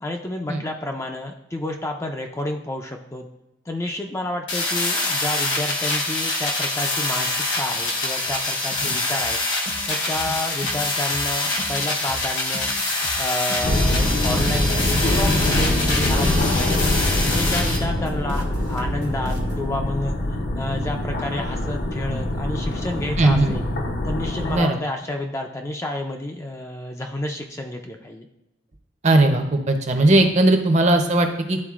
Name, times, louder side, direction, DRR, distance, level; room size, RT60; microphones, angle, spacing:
voice 1, 0.0-3.3 3.7-9.4 9.9-12.7 13.2-16.9 17.3-20.2 20.5-23.7 24.0-28.3, left 1 dB, 15° left, 3 dB, 0.4 m, -30 dB
sound 1, 4.5-17.8, left 2 dB, 75° left, 1.4 m, -25 dB
sound 2, 7.7-7.9 8.2-8.4 8.7-19.7, right 1 dB, 80° right, 1.2 m, -37 dB
sound 3, 13.6-24.6, left 1 dB, 55° left, 0.6 m, -24 dB
voice 2, 23.2-23.5 24.5-24.8 29.0-31.6, right 2 dB, 35° right, 5 dB, 0.7 m, -18 dB
11.0 x 3.9 x 2.4 m, 0.95 s
head